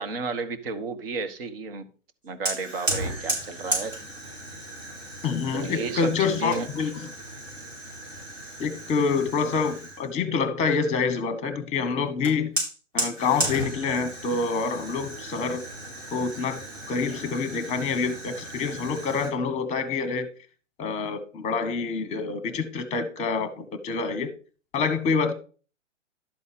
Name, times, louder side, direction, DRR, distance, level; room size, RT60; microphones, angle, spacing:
voice 1, 0.0-1.8 2.2-3.9 5.5-6.9, right 4 dB, 50° right, 1.4 m, -32 dB
Fire, 2.5-10.1 12.2-19.3, right 1 dB, 85° right, 5.5 m, -34 dB
voice 2, 5.2-6.9 8.6-12.5 12.9-15.6 16.1-16.6 16.9-20.3 20.8-24.3 24.7-25.3, left 5 dB, 20° left, 1.2 m, -27 dB
12.0 x 4.1 x 5.2 m
figure-of-eight pair, 125°, 38 cm